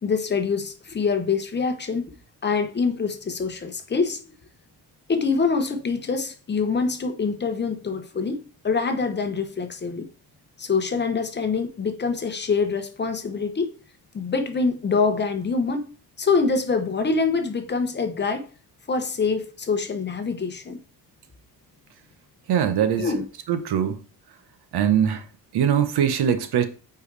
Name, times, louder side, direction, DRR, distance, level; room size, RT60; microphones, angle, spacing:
voice 1, 0.0-2.1 2.4-4.2 5.1-10.1 10.6-13.7 14.1-15.9 16.2-18.5 18.9-20.8 23.0-23.2, left 4 dB, 25° left, 0.8 m, -25 dB
voice 2, 22.5-23.1 23.5-24.0 24.7-25.2 25.5-26.6, right 9 dB, 75° right, 1.0 m, -21 dB
8.2 x 4.7 x 3.3 m
cardioid pair, 150°, 39 cm